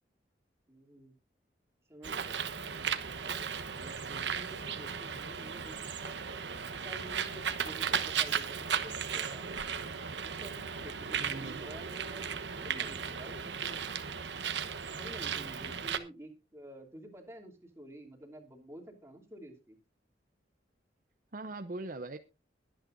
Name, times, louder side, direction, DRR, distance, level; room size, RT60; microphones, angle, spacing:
voice 1, 0.7-1.1 1.9-2.4 3.2-9.5 10.2-12.3 12.6-13.8 14.9-19.8, right 1 dB, 15° right, 1 dB, 2.9 m, -50 dB
Bird, 2.0-16.0, right 7 dB, 75° right, 1.1 m, -36 dB
voice 2, 11.2-11.6 21.3-22.2, right 2 dB, 45° right, 8 dB, 0.7 m, -41 dB
22.0 x 8.8 x 2.6 m, 0.30 s
head